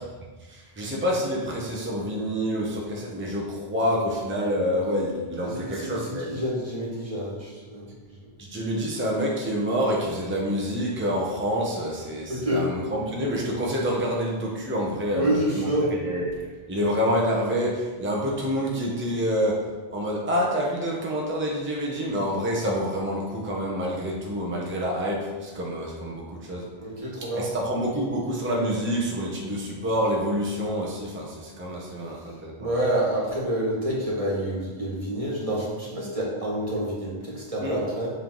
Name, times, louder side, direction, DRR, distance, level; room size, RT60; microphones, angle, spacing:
voice 1, 0.5-6.3 8.4-26.7 27.2-32.7 37.6-37.8, equal, 15° right, -3 dB, 0.7 m, -27 dB
voice 2, 5.4-7.9 12.3-12.7 15.1-15.9 26.8-27.5 32.6-38.1, right 1 dB, 35° right, -5 dB, 1.5 m, -28 dB
7.2 x 3.5 x 3.8 m, 1.3 s
omnidirectional pair, 1.0 m